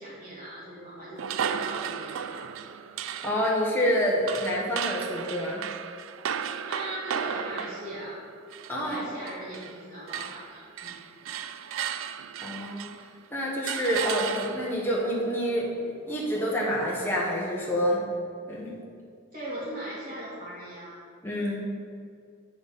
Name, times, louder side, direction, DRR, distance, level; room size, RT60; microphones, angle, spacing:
voice 1, 0.0-2.5 6.7-8.2 8.8-10.9 19.3-21.0, right 1 dB, 35° right, -13 dB, 2.1 m, -39 dB
sound 1, 1.2-9.8 10.1-13.1 13.7-14.9, right 8 dB, 80° right, 0.4 m, -35 dB
voice 2, 3.2-5.6 8.7-9.1 12.4-12.9 13.3-18.0 18.5-18.8 21.2-21.8, equal, 10° left, -5 dB, 1.2 m, -28 dB
8.8 x 4.0 x 5.5 m, 2.2 s
head